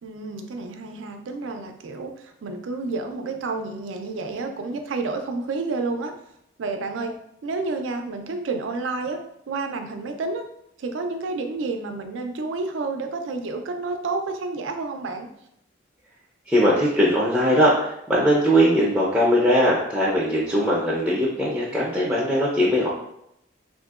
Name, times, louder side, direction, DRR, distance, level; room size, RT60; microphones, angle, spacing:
voice 1, 0.0-6.1 6.6-7.1 7.4-9.2 9.5-10.4 10.8-15.3, right 3 dB, 90° right, 5 dB, 0.4 m, -30 dB
voice 2, 16.5-22.9, equal, 5° right, -6 dB, 0.4 m, -20 dB
3.6 x 2.6 x 2.3 m, 0.77 s
head